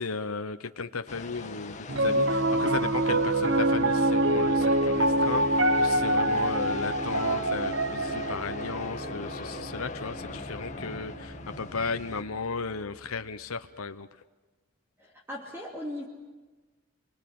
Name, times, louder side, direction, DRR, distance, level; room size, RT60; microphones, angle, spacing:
voice 1, 0.0-14.1, left 4 dB, 90° left, 9 dB, 1.0 m, -35 dB
sound 1, 1.1-12.2, left 3 dB, 35° left, 1.7 m, -41 dB
Piano, 1.9-12.3, right 1 dB, 60° right, 1.1 m, -26 dB
voice 2, 15.0-16.1, left 1 dB, 10° right, -2 dB, 2.7 m, -38 dB
30.0 x 23.5 x 7.8 m, 1.2 s
head